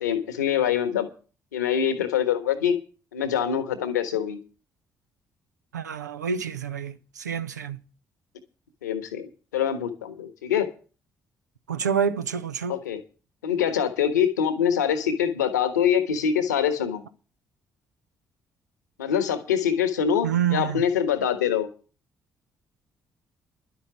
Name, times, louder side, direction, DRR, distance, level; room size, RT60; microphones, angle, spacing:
voice 1, 0.0-1.1 1.5-2.8 3.1-4.4 8.8-10.7 12.7-13.0 13.4-17.0 19.0-21.7, left 8 dB, 80° left, 1.3 m, -24 dB
voice 2, 5.7-7.8 11.7-12.8 20.2-20.8, right 8 dB, 85° right, 0.7 m, -27 dB
11.5 x 8.1 x 8.0 m
figure-of-eight pair, 40°, 9 cm